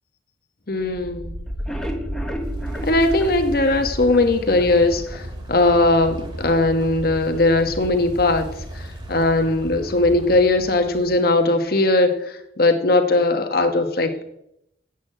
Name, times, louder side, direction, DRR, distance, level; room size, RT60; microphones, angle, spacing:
voice 1, 0.7-1.3 2.8-8.5 8.7-14.2, left 2 dB, 55° left, 6 dB, 1.3 m, -19 dB
sound 1, 0.7-11.5, equal, 25° right, 2.2 m, -34 dB
sound 2, 1.5-4.7 5.1-5.2 5.5-5.6 6.0-6.1, equal, 5° left, 1.1 m, -34 dB
8.7 x 8.2 x 7.7 m, 0.80 s
head